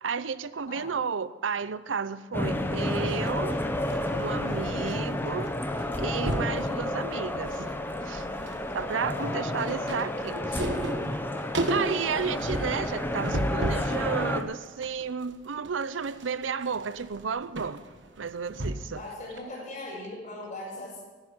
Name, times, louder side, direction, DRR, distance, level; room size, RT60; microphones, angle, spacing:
voice 1, 0.0-3.6 4.2-5.5 6.0-7.5 8.0-8.2 8.7-10.7 11.6-17.8 18.2-19.0, right 6 dB, 90° right, 0.6 m, -32 dB
sound 1, 2.3-14.4, left 1 dB, 10° left, 0.9 m, -31 dB
sound 2, 2.8-5.0 5.2-5.5 5.8-6.6 7.1-7.8 8.1-13.9 14.4-19.0 19.4-19.5, right 1 dB, 70° right, 1.4 m, -34 dB
voice 2, 6.6-7.0 8.9-9.4 11.6-12.3 18.9-21.0, left 1 dB, 40° left, 6.2 m, -40 dB
11.5 x 9.8 x 9.9 m
head